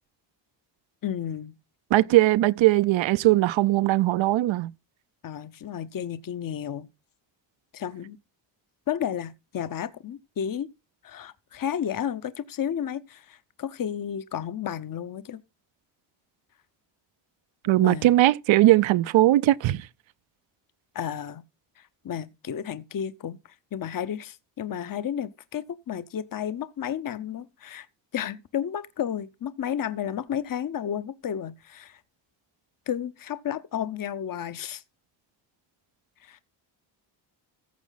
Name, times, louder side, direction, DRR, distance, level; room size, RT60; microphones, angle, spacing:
voice 1, 1.0-1.5 5.2-6.9 7.7-8.2 8.9-10.7 11.0-15.4 17.8-18.2 20.9-21.4 21.8-23.4 23.7-27.9 28.1-32.0 32.9-34.8 36.2-36.4, left 9 dB, 45° left, 0.9 m, -32 dB
voice 2, 1.9-4.7 17.6-19.8, right 16 dB, 80° right, 0.6 m, -20 dB
14.5 x 7.2 x 4.0 m
cardioid pair, 95°, 45 cm